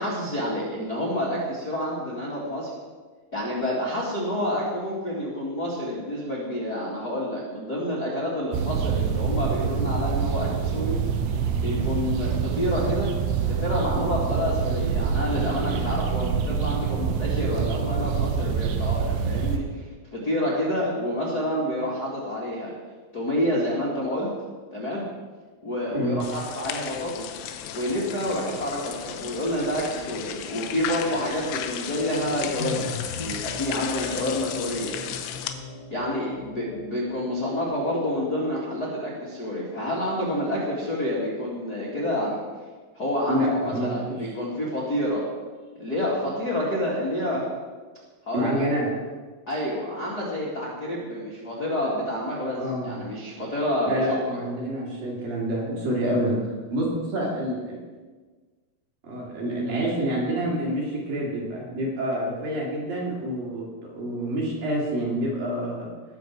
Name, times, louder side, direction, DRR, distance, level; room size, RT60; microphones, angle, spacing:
voice 1, 0.0-2.7 3.3-11.0 11.6-13.1 13.4-22.7 23.1-24.3 24.7-25.0 25.6-27.3 27.7-35.0 35.9-42.4 42.9-45.2 45.8-47.5 48.2-48.7 49.5-54.2, left 1 dB, 45° left, -7 dB, 1.3 m, -28 dB
sound 1, 8.5-19.6, right 6 dB, 80° right, 2.3 m, -26 dB
voice 2, 25.9-26.2 43.3-44.2 48.3-48.9 52.6-53.0 53.8-57.8 59.0-65.9, right 1 dB, 50° right, -4 dB, 3.7 m, -27 dB
sound 2, 26.2-35.5, left 9 dB, 90° left, 3.3 m, -35 dB
sound 3, 31.9-38.2, left 3 dB, 75° left, 3.2 m, -40 dB
20.5 x 6.9 x 4.7 m, 1.4 s
omnidirectional pair, 5.7 m